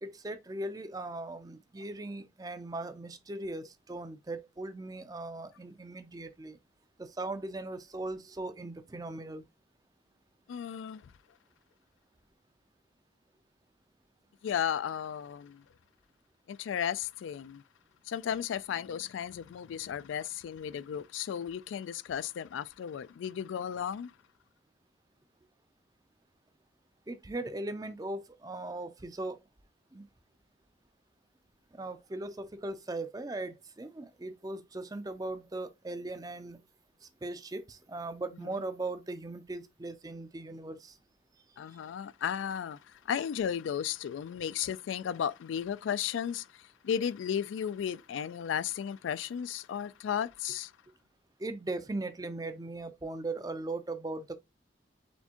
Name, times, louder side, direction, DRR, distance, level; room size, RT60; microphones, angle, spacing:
voice 1, 0.0-6.6 7.0-9.4 27.1-29.4 29.9-30.1 31.7-36.6 37.0-41.0 41.7-41.8 51.4-54.4, right 2 dB, 20° right, 0.4 m, -39 dB
voice 2, 10.5-11.1 14.4-15.6 16.5-17.6 18.1-24.1 38.4-38.5 41.6-50.7, left 8 dB, 80° left, 0.3 m, -34 dB
4.3 x 3.5 x 2.8 m
head